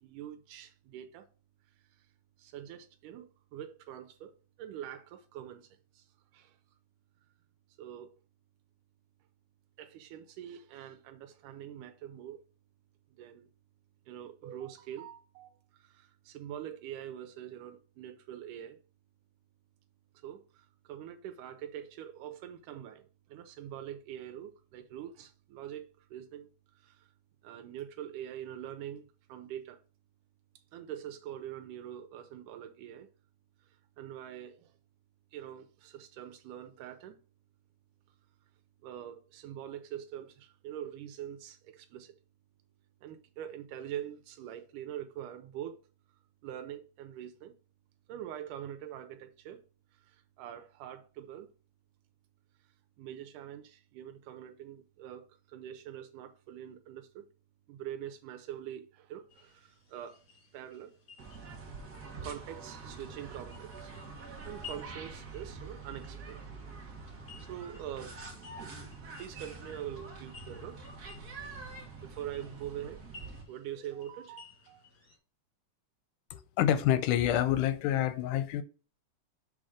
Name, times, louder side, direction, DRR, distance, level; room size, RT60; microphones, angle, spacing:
voice 1, 0.0-1.3 1.9-2.1 2.4-5.7 5.9-6.6 7.8-8.1 9.8-12.4 13.1-13.5 14.1-18.8 20.2-26.5 26.8-27.1 27.4-29.8 30.7-33.1 34.0-34.8 35.3-37.2 38.8-42.1 43.0-45.8 46.4-47.6 48.1-49.6 50.0-51.5 53.0-57.3 57.7-60.2 60.5-61.0 62.2-63.9 64.2-66.4 67.4-68.2 69.2-70.8 72.0-73.0 73.5-74.9, right 10 dB, 90° right, 2.2 m, -44 dB
sound 1, 59.3-75.2, left 6 dB, 40° left, 1.8 m, -56 dB
sound 2, 61.2-73.4, right 3 dB, 50° right, 1.2 m, -46 dB
voice 2, 76.3-78.6, left 11 dB, 90° left, 2.1 m, -27 dB
6.3 x 4.2 x 4.8 m
omnidirectional pair, 3.6 m